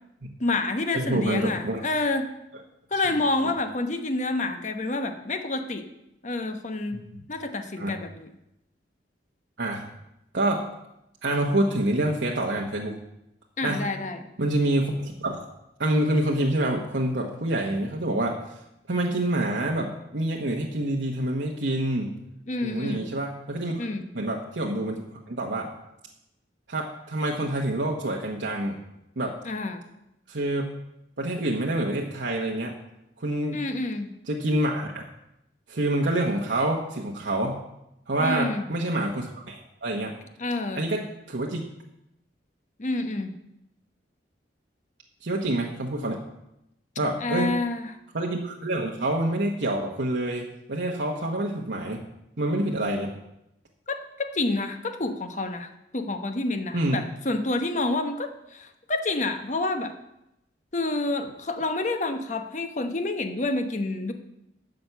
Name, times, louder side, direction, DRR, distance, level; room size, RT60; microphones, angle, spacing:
voice 1, 0.4-2.3 2.9-5.8 6.2-7.0 7.3-8.3 13.6-14.3 22.5-23.1 23.8-24.1 29.4-29.8 33.5-34.1 38.2-38.6 40.4-40.9 42.8-43.3 47.2-47.9 53.9-59.9 60.7-64.1, left 2 dB, 40° left, 7 dB, 1.0 m, -28 dB
voice 2, 0.9-1.8 6.9-7.2 7.8-7.9 9.6-9.8 10.3-10.7 11.2-13.0 13.6-13.9 14.4-15.5 15.8-18.4 18.9-22.1 22.6-23.8 24.1-25.0 25.3-25.7 26.7-28.8 29.2-29.3 30.3-30.6 31.2-32.8 33.2-33.6 34.3-35.0 35.7-37.6 38.1-40.1 40.7-41.6 45.2-46.2 47.0-47.6 48.1-52.0 52.4-53.1 56.7-57.0, right 1 dB, 80° right, -1 dB, 1.2 m, -27 dB
10.5 x 6.0 x 8.1 m, 0.86 s
head